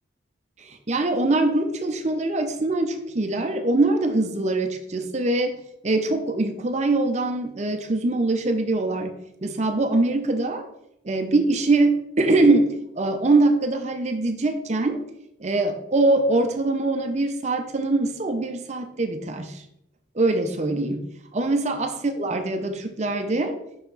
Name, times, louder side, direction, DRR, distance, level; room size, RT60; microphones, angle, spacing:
voice 1, 0.6-9.1 9.4-10.7 11.0-15.0 15.4-19.6 20.1-23.6, right 2 dB, 35° right, 7 dB, 0.6 m, -23 dB
5.7 x 4.5 x 3.9 m, 0.78 s
head